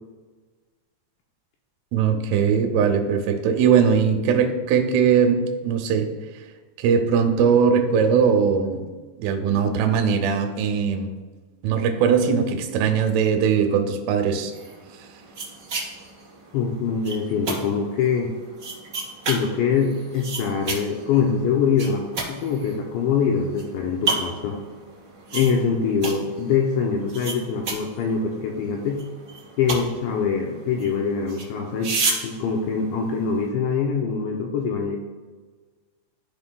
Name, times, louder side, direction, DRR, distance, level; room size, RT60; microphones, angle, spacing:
voice 1, 1.9-6.1 6.8-8.8 9.2-11.1 11.6-14.5, right 6 dB, 85° right, 6 dB, 3.4 m, -20 dB
sound 1, 14.5-33.5, right 3 dB, 35° right, 2.1 m, -33 dB
voice 2, 16.5-18.3 19.3-24.6 25.3-29.0 29.6-31.9 32.2-35.0, left 6 dB, 80° left, 0 dB, 2.7 m, -24 dB
14.5 x 5.2 x 2.2 m, 1.4 s
omnidirectional pair, 5.6 m